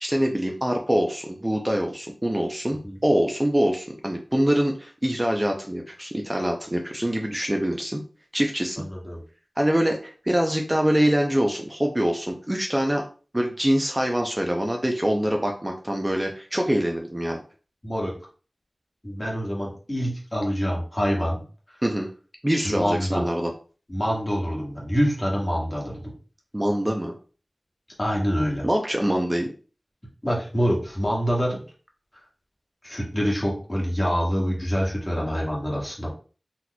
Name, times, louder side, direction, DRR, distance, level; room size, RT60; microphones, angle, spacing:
voice 1, 0.0-8.0 8.3-8.8 9.6-13.1 13.3-17.4 21.8-22.1 22.4-23.5 26.5-27.2 28.6-29.5, equal, 20° right, 2 dB, 0.5 m, -24 dB
voice 2, 19.0-21.4 22.6-23.2 23.9-26.1 28.0-28.6 30.2-31.6 32.8-36.1, equal, 30° left, -3 dB, 1.5 m, -26 dB
4.0 x 2.9 x 2.2 m, 0.38 s
wide cardioid pair, 50°, 0 cm